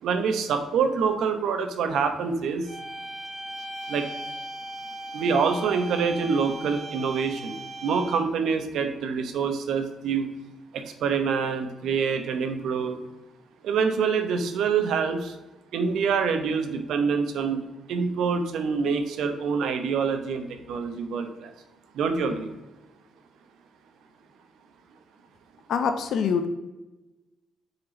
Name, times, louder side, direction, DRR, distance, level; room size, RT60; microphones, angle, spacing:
voice 1, 0.0-2.7 3.9-4.1 5.1-7.5 7.8-10.3 10.7-13.0 13.6-15.4 15.7-17.6 17.9-21.5 21.9-22.5, right 5 dB, 75° right, 7 dB, 0.9 m, -26 dB
sound 1, 2.6-8.4, right 1 dB, 10° right, 2.0 m, -38 dB
voice 2, 25.7-26.5, left 6 dB, 60° left, 8 dB, 0.7 m, -24 dB
6.5 x 4.4 x 3.9 m, 1.1 s
cardioid pair, 155°, 0 cm